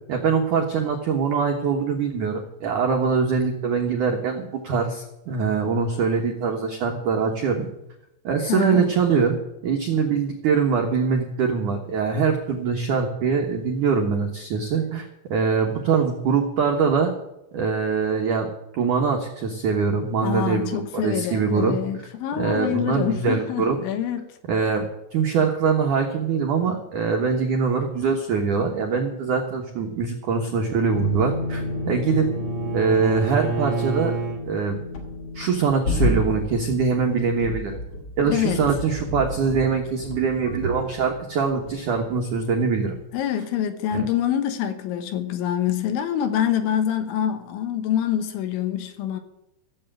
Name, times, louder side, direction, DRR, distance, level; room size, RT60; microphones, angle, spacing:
voice 1, 0.1-7.7 8.2-9.4 9.6-17.1 17.5-21.8 22.4-23.8 24.5-32.3 32.7-34.2 34.4-34.8 35.3-37.8 38.2-43.0 43.9-44.1, right 5 dB, 80° right, 1.8 m, -23 dB
voice 2, 8.5-8.9 20.2-24.3 38.2-38.7 43.1-49.2, left 10 dB, 75° left, 3.3 m, -25 dB
Bowed string instrument, 30.6-34.4, right 3 dB, 25° right, 1.1 m, -30 dB
sound 1, 30.9-42.5 42.7-43.0, left 2 dB, 50° left, 1.9 m, -31 dB
15.0 x 7.9 x 8.9 m
omnidirectional pair, 5.9 m